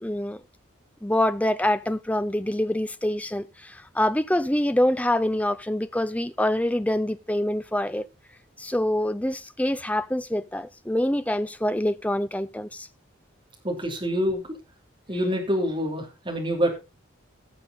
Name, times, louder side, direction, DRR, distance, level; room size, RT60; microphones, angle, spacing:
voice 1, 0.0-0.4 1.0-8.1 8.6-12.9, left 1 dB, 5° left, 0.5 m, -25 dB
voice 2, 13.6-14.4 15.1-16.7, equal, 25° right, 3.2 m, -26 dB
17.5 x 6.9 x 3.9 m
head